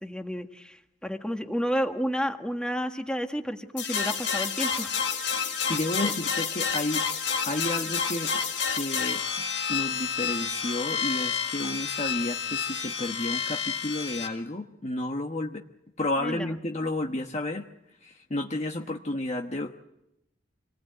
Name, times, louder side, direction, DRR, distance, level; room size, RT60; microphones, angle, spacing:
voice 1, 0.0-0.8 1.0-4.9 6.0-6.1 16.2-16.5, equal, 5° left, 5 dB, 1.5 m, -31 dB
sound 1, 3.8-14.3, left 6 dB, 85° left, 4.9 m, -29 dB
voice 2, 5.3-7.0 7.5-8.4 8.7-9.2 9.7-15.6 16.0-17.7 18.0-19.7, left 1 dB, 35° left, 3 dB, 1.1 m, -31 dB
27.5 x 19.5 x 9.2 m, 0.89 s
head